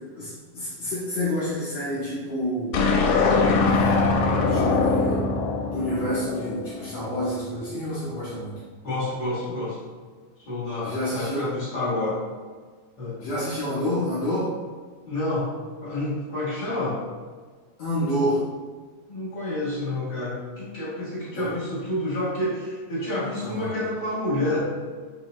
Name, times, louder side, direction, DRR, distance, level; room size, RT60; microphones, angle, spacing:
voice 1, 0.2-2.9 3.6-5.3 5.7-8.6 10.8-11.5 13.2-14.5 17.8-18.5 21.2-21.5 23.3-23.7, equal, 70° left, -9 dB, 1.6 m, -29 dB
sound 1, 2.7-7.1, left 3 dB, 85° left, 2.3 m, -22 dB
voice 2, 8.8-9.8 10.5-12.2 13.0-13.2 15.0-15.5 15.8-17.0 19.1-24.6, left 1 dB, 45° left, -11 dB, 1.8 m, -28 dB
6.2 x 2.7 x 2.9 m, 1.5 s
omnidirectional pair, 4.0 m